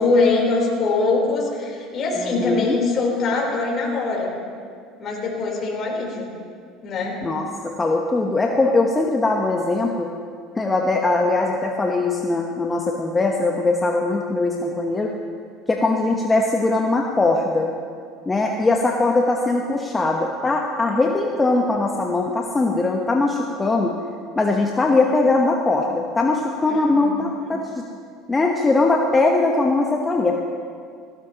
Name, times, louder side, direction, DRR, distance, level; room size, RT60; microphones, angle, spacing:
voice 1, 0.0-4.3 5.0-6.3 6.8-7.2 26.7-27.2, left 3 dB, 45° left, -3 dB, 4.1 m, -22 dB
voice 2, 2.2-2.8 7.2-10.1 10.6-15.1 15.7-17.7 18.3-24.0 24.4-27.7 28.3-30.3, left 3 dB, 20° left, 1 dB, 1.1 m, -21 dB
17.5 x 15.5 x 3.0 m, 2.1 s
hypercardioid pair, 75°, 0 cm